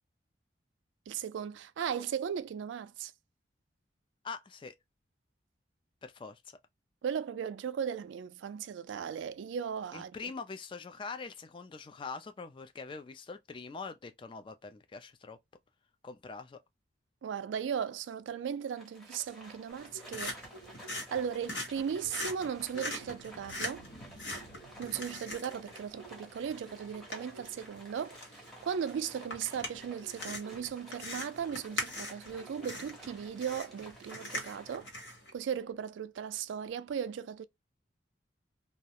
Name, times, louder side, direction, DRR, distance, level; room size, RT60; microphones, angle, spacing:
voice 1, 1.1-3.1 7.0-10.1 17.2-20.5 21.1-23.8 24.8-28.2 28.6-34.9 35.3-37.5, right 7 dB, 80° right, 0.3 m, -37 dB
voice 2, 4.2-4.7 6.0-6.6 9.9-15.4 16.0-16.6, left 4 dB, 25° left, 0.3 m, -43 dB
Livestock farm animals working animals, 18.7-35.1, right 1 dB, ahead, 0.7 m, -53 dB
sound 1, 19.7-35.3, left 1 dB, 90° left, 1.0 m, -43 dB
2.3 x 2.1 x 2.7 m
head